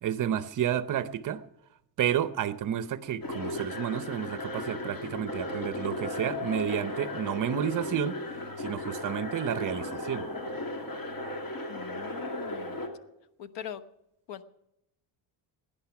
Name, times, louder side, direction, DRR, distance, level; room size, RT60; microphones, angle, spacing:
voice 1, 0.0-1.4 2.0-8.2 8.6-10.3, right 10 dB, 45° right, 12 dB, 0.7 m, -31 dB
sound 1, 3.2-12.9, left 1 dB, 45° left, 3.0 m, -36 dB
voice 2, 11.7-12.8 13.4-13.8 14.3-14.5, left 10 dB, 65° left, 12 dB, 1.1 m, -41 dB
17.5 x 10.5 x 5.9 m, 0.84 s
cardioid pair, 145°, 46 cm